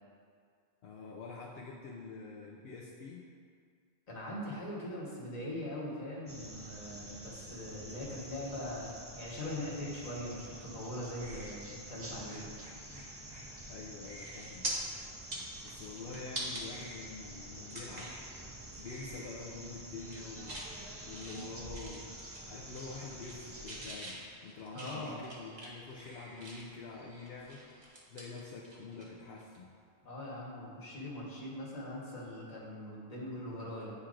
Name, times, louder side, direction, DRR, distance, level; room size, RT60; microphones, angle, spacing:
voice 1, 0.8-3.2 13.7-14.7 15.6-18.1 18.8-20.7 21.1-22.1 22.5-27.6 28.1-29.7, left 4 dB, 70° left, -5 dB, 0.8 m, -46 dB
voice 2, 4.1-12.5 24.7-25.2 30.0-33.9, left 1 dB, 40° left, -6 dB, 1.3 m, -41 dB
sound 1, 6.3-23.9, right 1 dB, 20° right, 0.4 m, -48 dB
sound 2, 10.9-27.9, equal, 80° right, 1.5 m, -58 dB
sound 3, 13.6-13.8 14.2-14.7 15.2-16.6 17.1-17.2 17.7-18.2 18.6-18.8 19.1-19.6 19.9-20.7 21.1-22.4 22.7-23.4 23.7-26.8 27.3-29.1 29.4-29.6 31.4-31.6, right 1 dB, 40° right, 1.1 m, -44 dB
9.5 x 4.4 x 2.5 m, 2.2 s
omnidirectional pair, 1.1 m